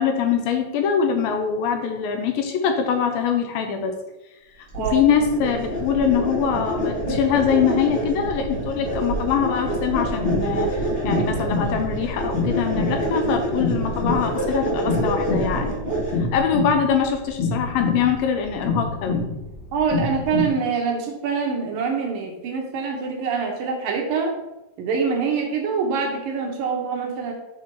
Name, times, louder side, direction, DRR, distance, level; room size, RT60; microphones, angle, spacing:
voice 1, 0.0-3.9 4.6-10.7 11.0-15.8 16.2-19.2, left 7 dB, 80° left, 5 dB, 2.3 m, -23 dB
sound 1, 4.7-16.4, right 1 dB, 15° left, 1.7 m, -27 dB
sound 2, 10.1-20.5, left 3 dB, 65° left, 2.1 m, -27 dB
voice 2, 19.7-24.3 24.8-27.3, right 5 dB, 70° right, 1 dB, 2.4 m, -25 dB
7.2 x 4.1 x 4.6 m, 0.93 s
omnidirectional pair, 4.4 m